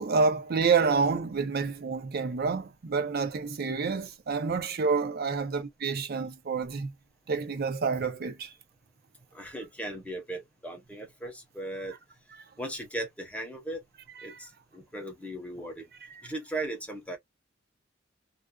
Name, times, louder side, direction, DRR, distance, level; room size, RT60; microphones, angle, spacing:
voice 1, 0.0-6.9 7.3-8.5 11.9-12.0 14.2-14.3 16.1-16.2, right 5 dB, 55° right, 0.5 m, -28 dB
voice 2, 9.3-11.9 12.6-13.8 14.2-15.8 16.2-17.2, right 1 dB, 5° left, 0.8 m, -37 dB
2.5 x 2.3 x 2.2 m
head